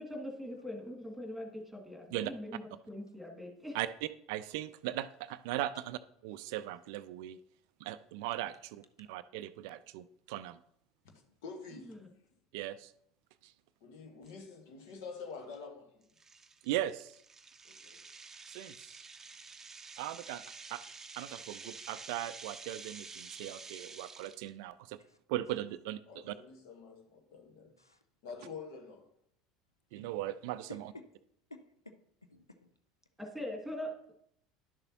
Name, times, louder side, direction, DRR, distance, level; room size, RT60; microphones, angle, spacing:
voice 1, 0.0-3.8 11.9-12.1 33.2-34.1, left 1 dB, ahead, 2.2 m, -42 dB
voice 2, 3.7-7.4 7.8-10.6 12.5-12.9 13.4-13.5 16.6-17.2 18.5-19.0 20.0-20.4 20.7-20.8 21.2-25.0 25.3-26.0 26.3-26.4 29.9-30.9, right 14 dB, 55° right, 0.4 m, -38 dB
voice 3, 11.4-11.9 13.8-16.1 17.6-18.0 25.5-25.6 26.1-27.7 28.2-29.1, left 5 dB, 60° left, 1.4 m, -47 dB
sound 1, 14.3-14.4 14.9-15.1 15.5-15.6 16.2-24.5, right 4 dB, 20° right, 0.7 m, -49 dB
voice 4, 30.7-31.0 31.5-32.7, left 1 dB, 85° left, 0.5 m, -53 dB
11.0 x 6.7 x 2.9 m
figure-of-eight pair, 70°, 2 cm